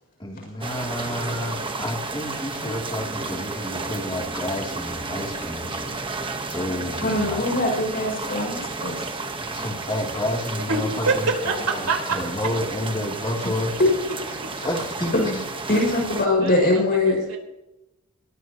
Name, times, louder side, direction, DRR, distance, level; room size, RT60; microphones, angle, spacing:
voice 1, 0.2-7.6 9.5-13.8 14.6-15.4, left 1 dB, 20° left, 0 dB, 3.3 m, -30 dB
sound 1, 0.6-16.3, right 3 dB, 25° right, 1.4 m, -32 dB
voice 2, 7.0-9.0 14.6-14.7 15.1-15.3 15.7-17.2, left 2 dB, 45° left, -1 dB, 7.1 m, -22 dB
voice 3, 10.7-11.1 11.4-12.2 16.3-17.4, right 4 dB, 80° right, 1 dB, 4.7 m, -26 dB
22.0 x 18.5 x 3.1 m, 0.93 s
head